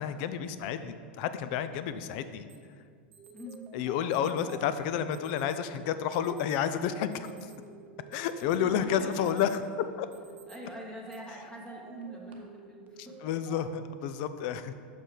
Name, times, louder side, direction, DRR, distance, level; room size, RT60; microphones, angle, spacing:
voice 1, 0.0-2.5 3.7-7.5 8.1-9.6 10.0-10.1 13.0-14.7, left 8 dB, 60° left, 11 dB, 0.5 m, -31 dB
Alarm, 2.5-2.6 3.1-3.6 4.1-4.6 5.1-5.6 6.1-6.6 7.0-7.7 8.1-8.6 9.0-9.7 10.1-10.6 11.1-11.2 12.0-12.3, right 7 dB, 80° right, 1.0 m, -57 dB
sound 1, 3.2-13.7, right 4 dB, 30° right, 0.7 m, -52 dB
voice 2, 3.3-3.7 8.5-9.3 10.5-13.3, right 1 dB, 10° left, -2 dB, 1.1 m, -44 dB
6.0 x 5.4 x 5.0 m, 2.1 s
hypercardioid pair, 115°, 6 cm